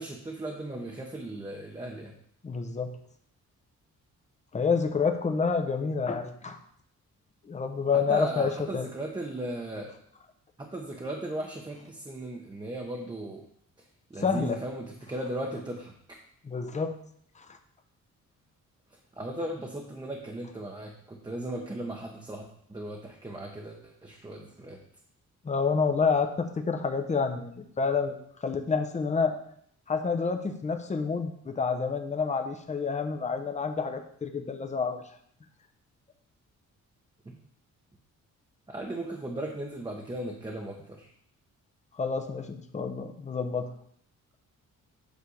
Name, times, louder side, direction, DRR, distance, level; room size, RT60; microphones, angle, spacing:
voice 1, 0.0-2.1 7.9-9.9 10.6-13.4 14.1-15.9 19.1-24.8 37.2-37.4 38.7-41.1, right 1 dB, 15° right, 0 dB, 0.9 m, -37 dB
voice 2, 2.4-2.9 4.5-6.6 7.4-8.9 14.2-14.6 16.4-16.9 17.4-17.5 25.4-28.1 28.4-29.4 29.9-35.0 42.0-43.7, left 5 dB, 25° left, 6 dB, 0.7 m, -28 dB
8.3 x 3.4 x 6.3 m, 0.66 s
cardioid pair, 130°, 30 cm